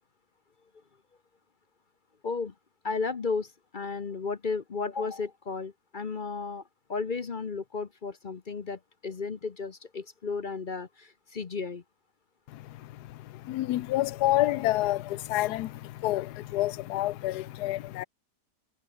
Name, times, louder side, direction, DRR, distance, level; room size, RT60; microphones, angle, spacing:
voice 1, 2.2-2.5 2.8-6.6 6.9-11.8, left 4 dB, 40° left, 0.8 m, -34 dB
voice 2, 13.4-18.0, left 16 dB, 75° left, 1.2 m, -28 dB
omnidirectional pair, 1.9 m